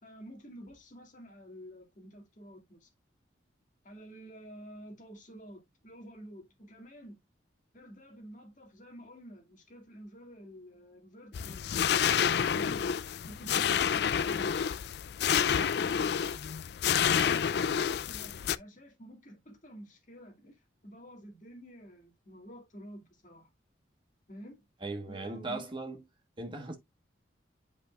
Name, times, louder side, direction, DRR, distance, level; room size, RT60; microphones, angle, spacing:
voice 1, 0.0-2.9 3.8-7.2 7.7-12.9 13.3-14.8 15.3-16.2 16.8-23.5 24.3-24.6 25.1-25.6, equal, 40° left, 2.1 m, -50 dB
sound 1, 11.3-18.6, left 8 dB, 55° left, 0.3 m, -29 dB
voice 2, 24.8-26.0 26.4-26.8, right 2 dB, 25° right, 1.3 m, -38 dB
8.1 x 5.3 x 2.4 m
head